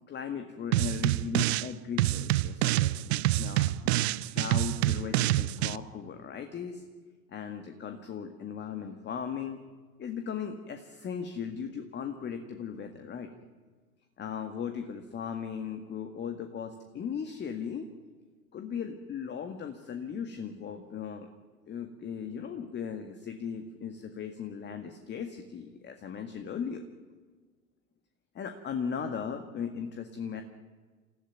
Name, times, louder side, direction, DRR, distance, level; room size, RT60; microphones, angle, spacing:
voice 1, 0.1-2.9 3.4-3.9 4.3-6.8 7.3-9.6 10.0-13.3 14.2-17.9 18.5-21.3 21.7-26.8 28.4-30.4, left 7 dB, 25° left, 7 dB, 1.9 m, -37 dB
sound 1, 0.7-1.7 2.0-5.8, right 16 dB, 50° right, 0.7 m, -27 dB
28.5 x 15.0 x 9.5 m, 1.4 s
figure-of-eight pair, 85°, 43 cm